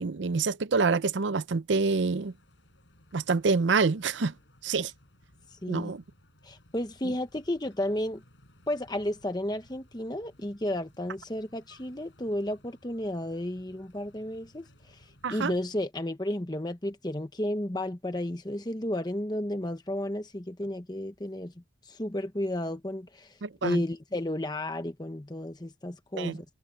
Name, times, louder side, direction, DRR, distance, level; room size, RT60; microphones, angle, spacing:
voice 1, 0.0-2.3 3.1-4.3 4.6-4.9 5.7-6.0 7.0-7.1 15.2-15.5 23.4-23.8 26.2-26.4, right 4 dB, 75° right, 0.6 m, -27 dB
sound 1, 1.9-15.7, left 1 dB, 75° left, 6.8 m, -60 dB
voice 2, 5.6-5.9 6.4-8.2 8.7-15.0 15.3-21.5 21.9-23.3 23.6-26.4, left 1 dB, 20° left, 1.0 m, -32 dB
head